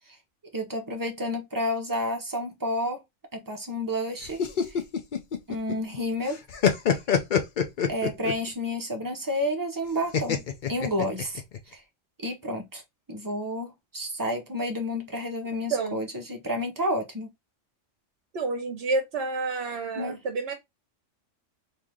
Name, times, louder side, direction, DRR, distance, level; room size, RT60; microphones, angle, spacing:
voice 1, 0.5-3.0 3.3-4.4 4.7-4.8 5.5-6.4 7.9-10.4 10.7-11.4 11.7-11.8 12.2-12.8 13.1-17.3 20.0-20.2, left 1 dB, 20° right, 0.6 m, -30 dB
sound 1, 4.2-6.0 6.3-8.5 10.1-11.6, left 7 dB, 50° left, 0.7 m, -25 dB
voice 2, 18.3-20.5, right 3 dB, 60° right, 0.9 m, -29 dB
3.1 x 2.8 x 3.6 m
omnidirectional pair, 1.3 m